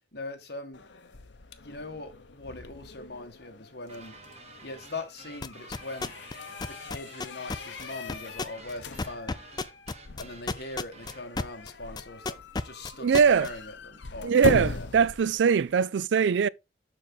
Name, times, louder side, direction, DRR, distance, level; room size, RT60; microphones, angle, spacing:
voice 1, 0.1-0.8 1.6-4.2 4.6-6.1 6.6-9.4 10.2-14.9, left 2 dB, 65° left, 1.9 m, -41 dB
sound 1, 0.7-15.8, left 3 dB, 85° left, 0.9 m, -39 dB
sound 2, 3.9-11.3, right 3 dB, 40° right, 1.5 m, -50 dB
sound 3, 5.4-6.4 6.6-11.7 12.0-13.5, left 3 dB, 25° left, 0.5 m, -31 dB
voice 2, 13.0-13.5 14.2-16.5, right 6 dB, 85° right, 0.4 m, -22 dB
7.3 x 6.0 x 4.0 m
head